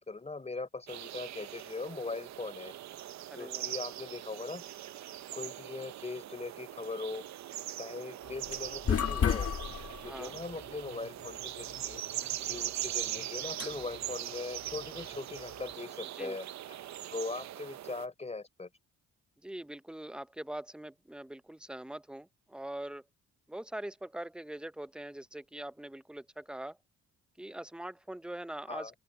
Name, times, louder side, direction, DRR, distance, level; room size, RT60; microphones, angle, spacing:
voice 1, 0.0-2.7 3.4-4.6 5.3-7.2 7.8-9.5 10.0-12.0 12.4-16.5 17.1-18.7 28.7-28.9, left 3 dB, 20° left, 4.1 m, -40 dB
sound 1, 0.9-18.1, right 12 dB, 65° right, 0.8 m, -41 dB
voice 2, 3.3-3.7 10.1-10.4 16.1-16.4 19.4-23.0 23.5-26.8 27.4-29.0, right 1 dB, 5° right, 0.8 m, -42 dB
sound 2, 8.2-15.7, left 8 dB, 50° left, 1.7 m, -36 dB
open air
cardioid pair, 90°, 30 cm